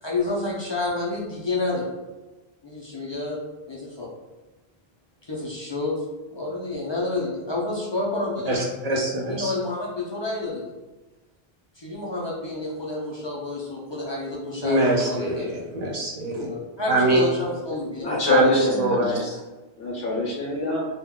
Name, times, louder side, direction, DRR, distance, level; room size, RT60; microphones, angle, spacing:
voice 1, 0.0-1.9 2.6-4.1 5.2-6.0 6.3-8.6 9.3-10.6 11.8-15.5 16.3-18.6, left 2 dB, 45° left, -5 dB, 0.3 m, -29 dB
voice 2, 8.5-9.5 14.6-16.5 16.9-17.2 18.3-18.4 18.8-19.1, right 1 dB, 50° right, -2 dB, 0.6 m, -24 dB
voice 3, 18.0-19.3 19.8-20.8, left 1 dB, 65° left, -3 dB, 0.8 m, -23 dB
2.2 x 2.1 x 3.5 m, 1.2 s
omnidirectional pair, 1.0 m